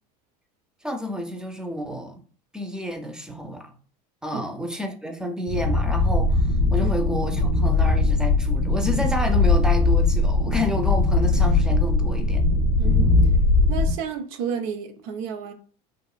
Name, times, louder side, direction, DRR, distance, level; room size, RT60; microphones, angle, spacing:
voice 1, 0.8-2.2 2.5-3.7 4.2-12.4, equal, 5° right, 0.4 m, -30 dB
sound 1, 5.5-13.9, left 3 dB, 60° left, 0.6 m, -20 dB
voice 2, 12.8-13.1 13.7-15.5, right 6 dB, 70° right, 0.6 m, -31 dB
2.8 x 2.5 x 2.3 m
supercardioid pair, 115°, 20 cm